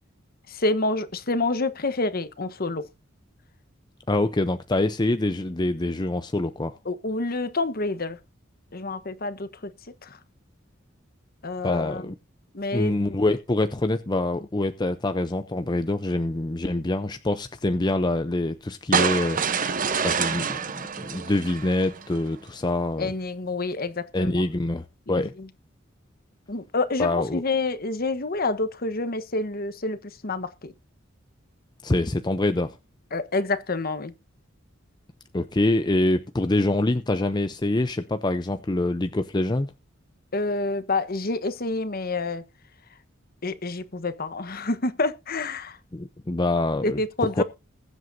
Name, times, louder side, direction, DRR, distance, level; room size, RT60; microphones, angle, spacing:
voice 1, 0.5-2.9 6.8-8.2 8.7-9.7 10.0-10.2 11.4-12.1 12.5-13.2 23.0-24.4 25.1-25.5 26.5-30.7 33.1-34.1 40.3-42.4 43.4-45.8 46.8-47.4, left 2 dB, 50° left, 1.2 m, -28 dB
voice 2, 4.1-6.7 11.6-12.2 12.7-19.7 20.0-23.1 24.1-25.3 27.0-27.4 31.8-32.7 35.3-39.7 45.9-47.0 47.4-47.5, left 2 dB, 20° left, 0.6 m, -25 dB
sound 1, 18.9-22.2, right 6 dB, 45° right, 0.9 m, -26 dB
21.0 x 8.0 x 2.7 m
head